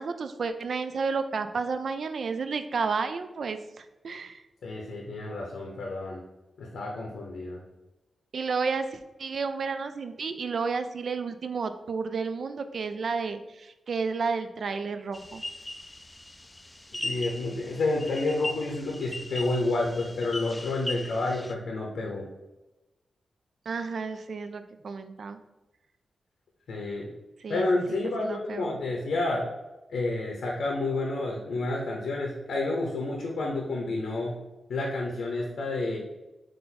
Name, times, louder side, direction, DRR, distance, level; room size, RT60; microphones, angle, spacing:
voice 1, 0.0-4.4 8.3-15.4 23.7-25.4 27.4-27.7 28.2-28.7, right 4 dB, 65° right, 10 dB, 0.3 m, -31 dB
voice 2, 4.6-6.2 6.6-7.6 16.9-22.3 26.7-27.1 27.5-29.4 29.9-34.3 34.7-36.0, left 2 dB, 90° left, -1 dB, 0.7 m, -30 dB
sound 1, 15.1-21.5, left 2 dB, 20° left, 0.3 m, -39 dB
3.8 x 2.6 x 4.2 m, 1.0 s
cardioid pair, 80°, 0 cm